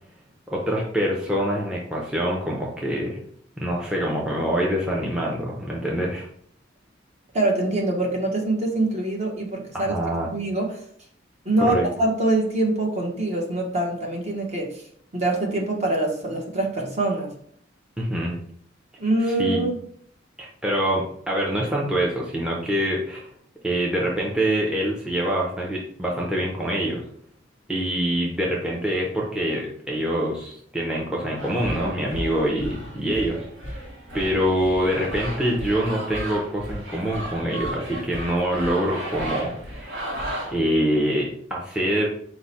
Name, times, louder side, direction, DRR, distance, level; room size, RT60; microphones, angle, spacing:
voice 1, 0.5-3.2 3.6-6.3 9.7-10.3 11.6-11.9 18.0-18.3 19.4-19.6 20.4-23.3 23.6-27.0 27.7-33.4 34.1-40.1 40.5-42.1, equal, 5° right, -2 dB, 0.5 m, -25 dB
voice 2, 7.3-9.9 10.3-10.8 11.4-14.7 15.1-17.3 19.0-19.8, right 2 dB, 35° right, 0 dB, 0.8 m, -24 dB
sound 1, 31.4-40.6, right 1 dB, 70° right, 1.4 m, -34 dB
4.7 x 2.0 x 4.0 m, 0.64 s
head